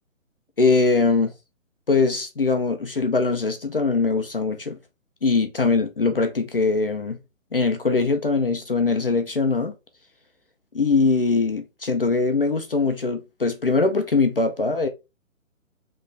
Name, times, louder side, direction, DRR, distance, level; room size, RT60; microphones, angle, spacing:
voice 1, 0.6-1.3 1.9-4.8 5.2-7.2 7.5-9.7 10.7-14.9, left 4 dB, 45° left, 0.5 m, -22 dB
3.9 x 3.2 x 3.2 m
hypercardioid pair, 175°, 41 cm